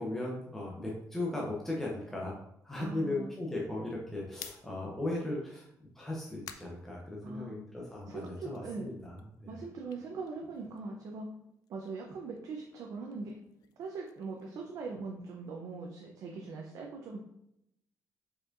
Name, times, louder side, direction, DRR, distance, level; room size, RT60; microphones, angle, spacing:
voice 1, 0.0-2.4 2.6-5.7 5.9-9.5, left 2 dB, 5° left, -4 dB, 0.6 m, -37 dB
voice 2, 2.8-3.3 7.2-7.6 8.1-8.9 9.5-11.3 11.7-13.4 13.8-17.2, right 4 dB, 60° right, 0 dB, 0.6 m, -41 dB
sound 1, 4.3-7.7 8.1-11.1 11.3-15.5, left 9 dB, 75° left, 0.4 m, -54 dB
4.8 x 4.4 x 2.5 m, 0.78 s
cardioid pair, 175°, 7 cm